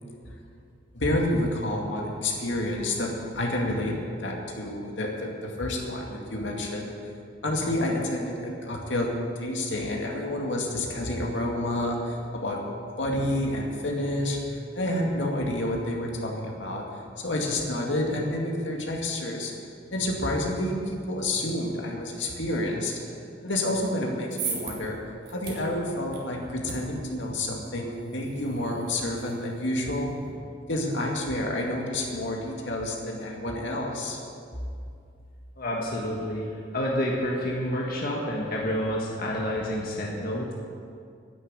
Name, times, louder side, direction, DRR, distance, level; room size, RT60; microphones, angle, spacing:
voice 1, 0.9-6.9 7.4-9.1 9.4-12.6 13.0-16.8 17.2-19.5 19.9-22.9 23.4-25.0 25.3-30.1 30.7-34.2, left 1 dB, 80° left, -1 dB, 2.3 m, -29 dB
sound 1, 24.0-30.3, right 5 dB, 60° right, 3.0 m, -40 dB
voice 2, 35.6-36.5 36.7-40.5, equal, 55° left, -2 dB, 1.7 m, -29 dB
11.0 x 10.0 x 8.8 m, 2.4 s
head